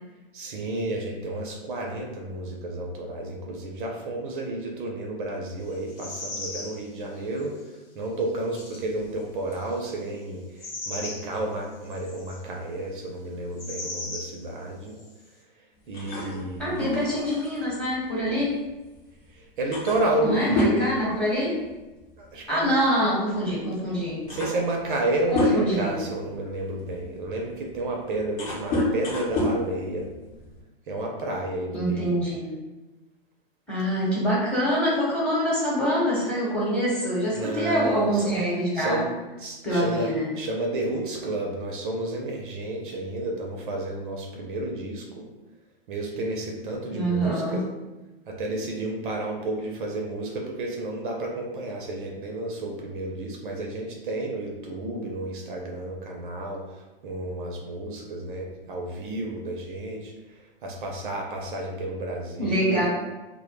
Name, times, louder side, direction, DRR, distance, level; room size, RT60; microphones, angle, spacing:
voice 1, 0.3-7.5 8.0-15.1 15.9-17.1 19.3-20.9 22.2-22.8 24.2-30.1 30.9-32.2 37.3-38.4 38.7-39.1 39.4-45.3 45.9-47.7 48.3-60.1 60.6-62.9, right 2 dB, 55° right, 1 dB, 0.5 m, -31 dB
sound 1, 5.7-6.8 7.2-7.6 8.5-8.9 9.5-10.0 10.6-11.4 11.7-12.4 13.6-14.4 14.9-15.1, left 2 dB, 70° left, 0.9 m, -37 dB
sound 2, 15.9-19.0 19.3-19.4 19.7-21.9 22.2-22.4 23.4-23.5 24.0-25.9 26.5-30.6, left 1 dB, 40° left, 0.7 m, -29 dB
voice 2, 16.6-18.5 20.2-21.6 22.5-24.2 25.3-26.0 31.7-32.6 33.7-39.1 39.6-40.3 46.9-47.6 62.4-62.9, equal, 5° left, -7 dB, 0.9 m, -25 dB
2.1 x 2.1 x 3.0 m, 1.1 s
hypercardioid pair, 115°, 30 cm